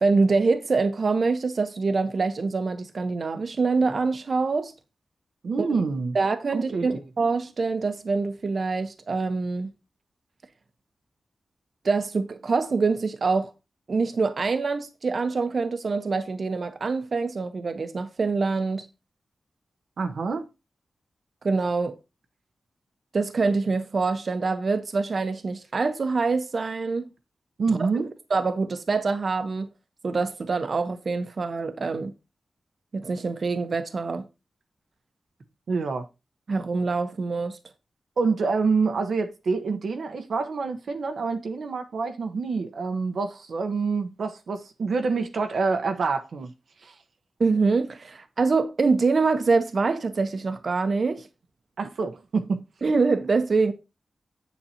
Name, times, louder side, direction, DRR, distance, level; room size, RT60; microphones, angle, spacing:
voice 1, 0.0-4.7 5.6-5.8 6.1-9.7 11.8-13.5 13.9-18.9 21.4-22.0 23.1-27.1 27.8-27.9 28.3-29.7 30.0-32.1 32.9-34.3 36.5-37.6 47.4-51.3 52.8-53.7, right 4 dB, 60° right, 1.0 m, -25 dB
voice 2, 5.4-6.2 6.5-6.9 20.0-20.5 27.6-28.1 35.7-36.1 38.2-46.5 46.8-46.9 51.8-52.6, right 4 dB, 80° right, 1.0 m, -27 dB
8.2 x 7.3 x 2.9 m
cardioid pair, 60°, 0 cm